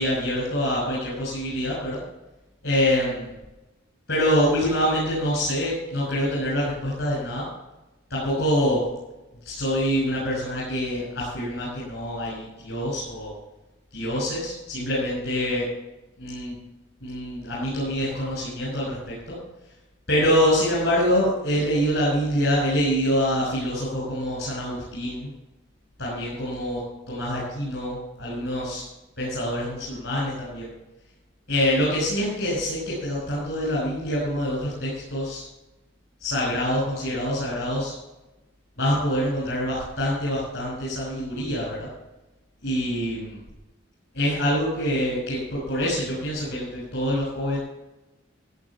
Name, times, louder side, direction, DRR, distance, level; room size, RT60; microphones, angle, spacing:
voice 1, 0.0-2.0 2.6-3.3 4.1-7.4 8.1-8.8 9.4-13.3 13.9-15.7 16.2-16.6 17.0-19.4 20.1-25.3 26.0-26.8 27.1-28.9 29.2-30.7 31.5-35.4 36.2-37.9 38.8-41.9 42.6-43.4 44.1-47.6, equal, 60° left, -7 dB, 6.1 m, -25 dB
15.0 x 7.9 x 7.4 m, 1.0 s
head